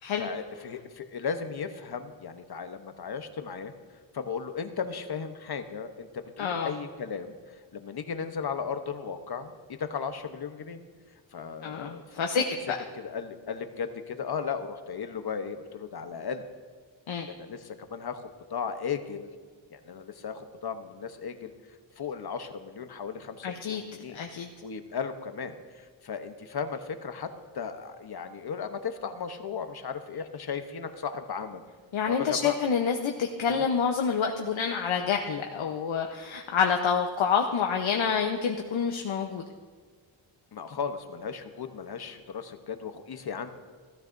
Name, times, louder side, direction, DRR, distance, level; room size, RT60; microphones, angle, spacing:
voice 1, 0.2-3.7 4.1-10.8 11.3-12.3 12.9-16.5 17.3-19.3 19.7-21.5 22.0-24.2 24.6-31.6 32.1-32.6 33.5-33.6 40.5-43.5, left 6 dB, 50° left, 8 dB, 1.0 m, -36 dB
voice 2, 6.4-6.7 11.6-12.4 17.1-17.3 23.4-23.8 24.1-24.5 31.9-39.4, left 6 dB, 75° left, 3 dB, 0.9 m, -27 dB
17.0 x 13.0 x 2.6 m, 1.5 s
wide cardioid pair, 110°, 48 cm